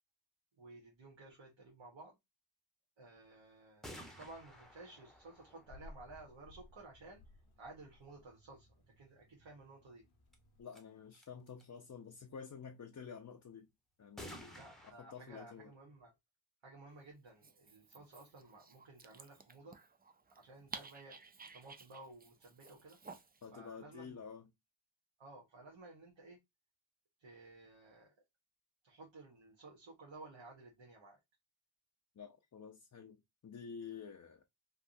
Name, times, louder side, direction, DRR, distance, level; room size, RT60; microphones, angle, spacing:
voice 1, 0.6-2.2 3.0-7.2 7.6-10.0 14.6-16.1 16.6-19.8 20.3-21.2 21.5-23.0 23.5-24.1 25.2-26.4 27.2-28.2 28.8-31.2, right 2 dB, 75° right, 1.1 m, -55 dB
sound 1, 3.8-6.7 10.3-10.4 10.7-10.8 11.1-11.6 14.2-14.9, equal, ahead, 0.8 m, -53 dB
sound 2, 3.9-10.6, left 1 dB, 85° left, 1.0 m, -61 dB
voice 2, 10.6-13.7 14.0-15.7 23.4-24.5 32.2-34.4, left 6 dB, 40° left, 0.6 m, -50 dB
Dog, 17.3-23.5, right 4 dB, 20° right, 0.3 m, -54 dB
3.4 x 2.4 x 2.5 m
wide cardioid pair, 80°, 47 cm